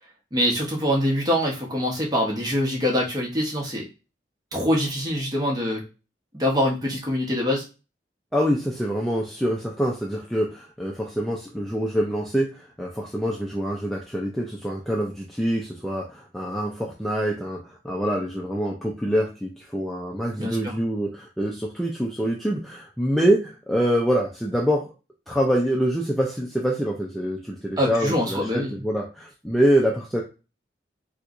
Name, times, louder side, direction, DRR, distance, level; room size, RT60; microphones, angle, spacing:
voice 1, 0.3-3.8 4.5-5.8 6.3-7.6 20.4-20.8 27.8-28.8, equal, 25° right, -2 dB, 1.0 m, -24 dB
voice 2, 8.3-24.9 25.3-30.2, equal, ahead, -2 dB, 0.4 m, -25 dB
4.4 x 2.3 x 2.5 m, 0.31 s
head